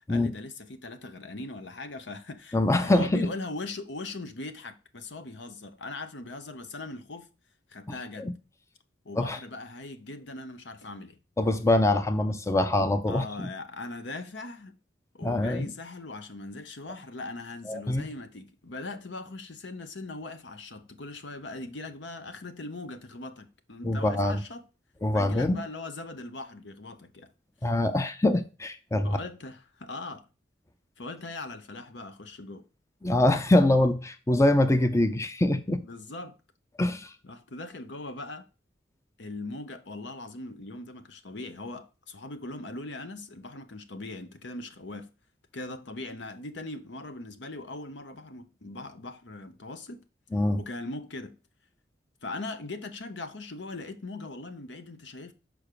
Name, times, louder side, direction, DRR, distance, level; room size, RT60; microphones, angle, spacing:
voice 1, 0.1-7.3 7.7-8.3 9.0-11.2 13.1-14.8 15.1-24.6 25.1-27.3 29.0-30.3 31.0-32.6 35.9-36.4 37.2-38.5 39.2-45.1 45.5-50.0 50.6-51.4 52.2-55.3, left 2 dB, 70° left, 0.9 m, -40 dB
voice 2, 2.5-3.3 8.2-8.3 9.2-9.4 11.4-13.5 15.2-15.7 17.7-18.1 23.8-24.4 25.0-25.6 27.6-29.2 33.0-35.8 36.8-37.1 50.3-50.6, left 1 dB, 15° left, 0.6 m, -24 dB
6.2 x 5.0 x 6.7 m
head